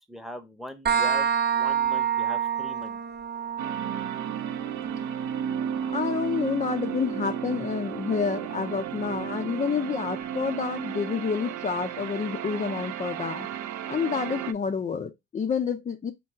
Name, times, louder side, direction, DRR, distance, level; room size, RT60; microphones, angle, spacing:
voice 1, 0.1-3.0, equal, ahead, 0.7 m, -40 dB
sound 1, 0.9-8.3, right 8 dB, 35° right, 0.7 m, -30 dB
sound 2, 3.6-14.5, right 9 dB, 75° right, 0.5 m, -33 dB
voice 2, 5.9-13.5 13.9-16.1, left 6 dB, 25° left, 0.4 m, -29 dB
4.4 x 2.3 x 3.4 m
cardioid pair, 90°, 30 cm